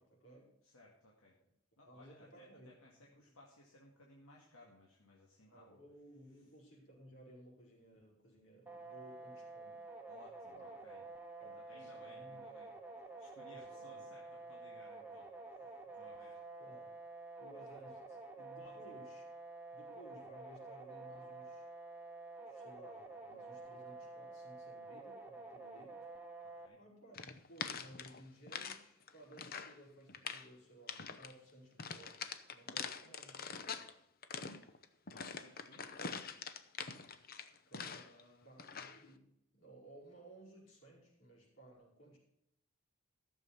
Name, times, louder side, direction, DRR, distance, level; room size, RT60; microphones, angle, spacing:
voice 1, 0.0-0.6 1.9-2.7 3.0-3.3 5.5-9.8 10.5-10.9 11.4-12.7 13.5-14.1 15.4-15.5 16.6-16.9 17.4-19.2 19.7-21.7 22.4-26.1 26.8-33.5 37.7-38.1 38.4-42.2, right 1 dB, 65° left, -3 dB, 5.1 m, -58 dB
voice 2, 0.6-1.4 1.8-5.8 10.1-11.0 11.4-12.7 13.2-15.7 15.9-16.4 18.6-18.9 26.4-26.8 35.1-36.1 38.0-38.5, left 1 dB, 85° left, -2 dB, 2.0 m, -61 dB
sound 1, 8.7-26.7, right 3 dB, 10° right, 1.2 m, -50 dB
sound 2, 27.1-28.8 29.1-29.8 30.1-30.5 30.9-31.3 31.8-33.9 34.2-38.2 38.6-39.0, left 6 dB, 45° left, 0.8 m, -44 dB
14.0 x 7.0 x 5.8 m, 0.78 s
head